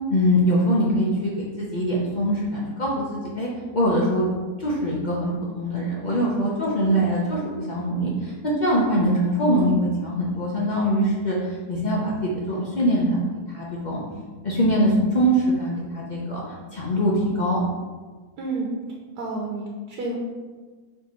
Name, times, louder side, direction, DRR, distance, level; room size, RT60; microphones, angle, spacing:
voice 1, 0.1-1.3 1.6-4.3 4.6-13.2 13.5-14.0 14.4-16.4 16.7-17.6, equal, 75° left, -5 dB, 0.4 m, -23 dB
voice 2, 18.4-18.7 19.2-20.2, right 3 dB, 75° right, -3 dB, 1.2 m, -30 dB
4.4 x 2.8 x 4.2 m, 1.4 s
omnidirectional pair, 1.8 m